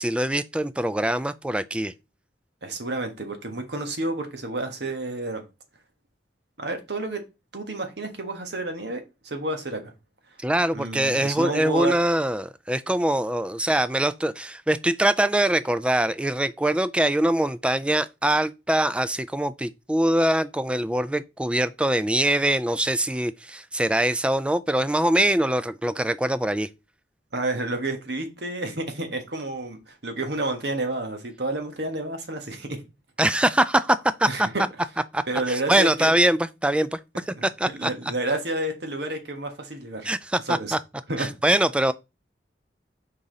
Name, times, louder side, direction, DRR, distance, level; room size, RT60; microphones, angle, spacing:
voice 1, 0.0-1.9 10.4-26.7 33.2-34.5 35.1-37.9 40.0-40.8 41.2-41.9, right 1 dB, 5° right, 0.3 m, -23 dB
voice 2, 2.6-5.4 6.6-7.2 7.5-9.9 10.7-12.0 27.3-32.8 34.3-34.5 35.3-36.1 37.4-37.5 37.7-40.1 40.4-40.7 41.1-41.3, right 2 dB, 70° right, 1.5 m, -30 dB
5.6 x 4.9 x 4.0 m
head